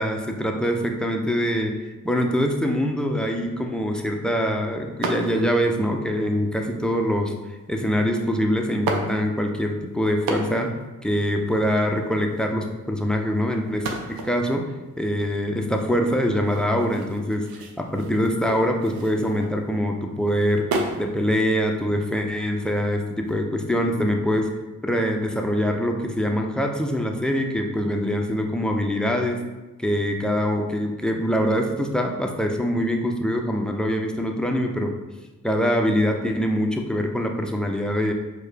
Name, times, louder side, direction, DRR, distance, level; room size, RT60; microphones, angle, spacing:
voice 1, 0.0-1.7 2.0-7.3 7.7-10.7 11.0-14.6 15.0-17.5 17.8-20.7 21.0-24.5 24.8-29.4 29.8-34.9 35.4-38.1, equal, ahead, 2 dB, 0.5 m, -24 dB
sound 1, 5.0-5.7 6.5-7.0 8.0-8.1 8.7-9.6 10.1-10.8 11.1-11.2 11.4-12.4 13.7-19.8 20.2-21.1 21.5-23.3, right 3 dB, 70° right, 0.6 m, -33 dB
4.4 x 2.2 x 3.2 m, 1.1 s
supercardioid pair, 40°, 37 cm